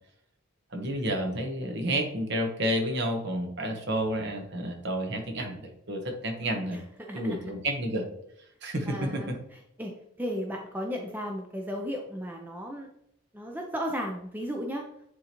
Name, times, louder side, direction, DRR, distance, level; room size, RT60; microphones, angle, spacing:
voice 1, 0.7-6.8 7.1-8.0 8.6-9.4, right 1 dB, 50° right, 3 dB, 1.1 m, -30 dB
voice 2, 6.7-7.4 8.9-9.9 10.2-12.9 13.3-14.9, equal, 10° right, 1 dB, 0.5 m, -35 dB
9.6 x 3.8 x 3.0 m, 0.76 s
head